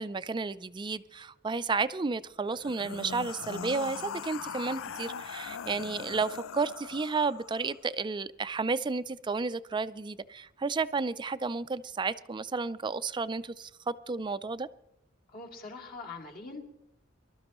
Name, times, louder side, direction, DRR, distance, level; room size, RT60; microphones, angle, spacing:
voice 1, 0.0-14.7, right 4 dB, 25° right, 0.4 m, -32 dB
sound 1, 2.5-7.8, left 7 dB, 80° left, 0.4 m, -40 dB
voice 2, 15.3-16.6, left 3 dB, 50° left, 2.5 m, -43 dB
24.5 x 12.5 x 3.0 m
head